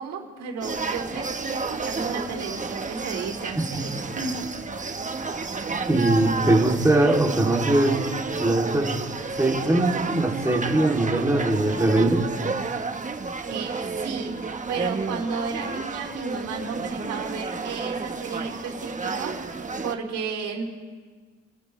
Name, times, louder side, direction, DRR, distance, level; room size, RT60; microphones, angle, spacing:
voice 1, 0.0-4.4 4.8-5.1 13.5-20.6, right 5 dB, 85° right, -1 dB, 4.8 m, -33 dB
sound 1, 0.6-19.9, right 4 dB, 25° right, 1.2 m, -31 dB
voice 2, 5.9-8.0 8.4-8.9 9.4-12.2, right 2 dB, 10° right, -2 dB, 2.9 m, -21 dB
29.5 x 13.0 x 3.3 m, 1.5 s
cardioid pair, 90°, 30 cm